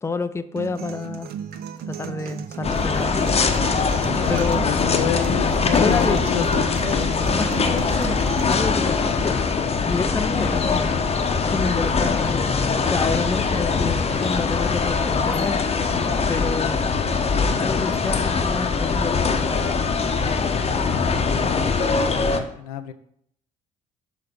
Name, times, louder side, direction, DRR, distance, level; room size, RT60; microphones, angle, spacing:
voice 1, 0.0-1.3 1.9-3.4 4.3-4.7 5.8-6.2 7.3-8.2 8.4-9.4 9.8-11.0 11.4-15.6 16.3-16.8 17.6-19.3, left 4 dB, 15° left, 12 dB, 0.5 m, -29 dB
sound 1, 0.6-8.5, right 8 dB, 55° right, 0.7 m, -34 dB
sound 2, 2.6-22.4, left 4 dB, 30° left, 0.9 m, -22 dB
voice 2, 4.2-7.3 7.7-8.1 9.1-9.2 21.1-21.9 22.3-22.9, left 11 dB, 80° left, 11 dB, 0.5 m, -30 dB
6.6 x 3.8 x 5.1 m, 0.68 s
hypercardioid pair, 50°, 19 cm